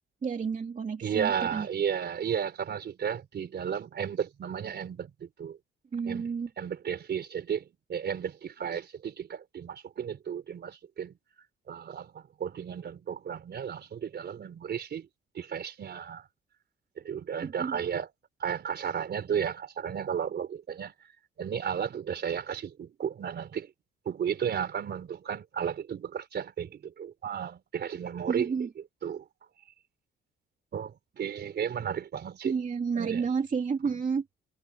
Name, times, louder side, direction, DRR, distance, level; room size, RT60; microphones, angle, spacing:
voice 1, 0.2-1.7 5.9-6.5 17.4-17.8 28.3-28.7 32.4-34.2, right 5 dB, 40° right, 2.6 m, -31 dB
voice 2, 1.0-5.6 6.1-6.3 6.6-11.1 11.7-15.1 15.3-16.3 17.0-18.1 18.4-20.9 21.4-23.7 24.1-29.2 30.7-32.5 33.0-33.3, right 8 dB, 55° right, 3.9 m, -33 dB
cardioid pair, 90°, 20 cm